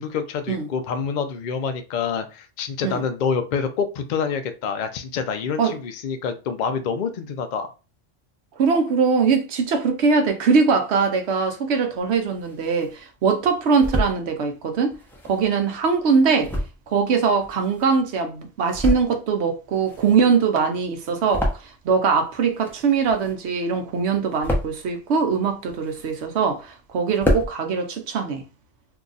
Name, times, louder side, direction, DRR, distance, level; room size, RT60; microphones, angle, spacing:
voice 1, 0.0-7.7, left 6 dB, 60° left, 0.5 m, -27 dB
voice 2, 8.6-14.9 15.2-16.5 16.9-21.5 21.8-28.4, right 5 dB, 65° right, 0.9 m, -21 dB
sound 1, 12.1-13.0 13.4-14.2 14.9-18.1 18.5-19.4 19.6-22.1 22.3-23.6 23.9-24.9 25.4-26.5 26.8-26.9 27.1-27.5, left 1 dB, 5° left, 0.5 m, -28 dB
2.7 x 2.3 x 3.9 m
omnidirectional pair, 1.3 m